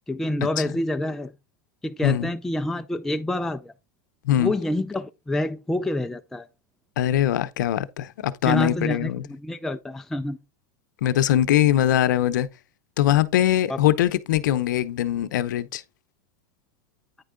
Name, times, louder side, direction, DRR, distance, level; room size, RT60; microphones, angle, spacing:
voice 1, 0.1-1.3 1.8-3.7 4.4-6.5 8.4-10.4 13.7-13.8, left 1 dB, 5° left, 0.4 m, -27 dB
voice 2, 7.0-9.2 11.0-12.5 13.0-15.8, left 12 dB, 80° left, 0.7 m, -22 dB
9.4 x 4.5 x 3.8 m
supercardioid pair, 120°, 10 cm